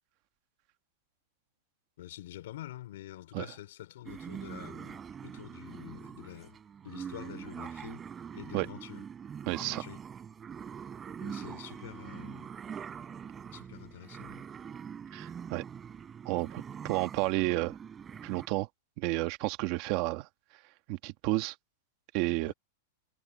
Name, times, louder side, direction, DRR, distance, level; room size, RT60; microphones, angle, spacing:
voice 1, 2.0-6.6 6.8-8.0 8.3-9.0 9.6-10.0 11.2-12.5 13.5-14.4 22.4-22.5, left 14 dB, 65° left, 4.4 m, -47 dB
sound 1, 4.1-18.5, right 7 dB, 15° right, 3.6 m, -43 dB
voice 2, 9.5-9.8 15.1-15.6 16.2-17.8 18.2-18.7 19.0-20.3 20.9-21.5 22.1-22.5, right 20 dB, 40° right, 1.6 m, -31 dB
supercardioid pair, 170°, 0 cm